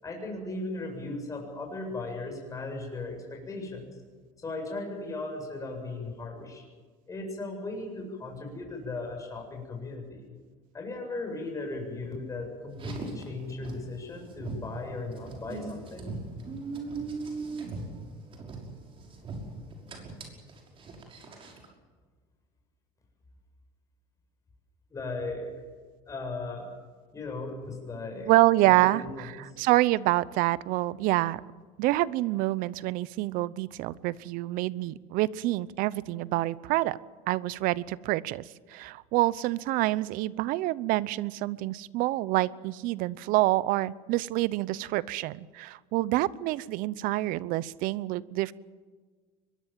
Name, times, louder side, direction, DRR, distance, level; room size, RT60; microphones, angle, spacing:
voice 1, 0.0-4.0 4.4-6.6 7.1-10.3 10.7-16.2 24.9-25.5 26.1-26.7 27.1-28.3 28.6-29.3, left 2 dB, 20° left, 1 dB, 7.9 m, -37 dB
Car, 12.7-21.7, right 3 dB, 35° right, 5.7 m, -40 dB
voice 2, 28.3-31.4 31.8-37.0 37.3-38.4 38.7-48.5, right 17 dB, 65° right, 20 dB, 0.8 m, -27 dB
23.5 x 22.0 x 7.6 m, 1.5 s
cardioid pair, 130°, 15 cm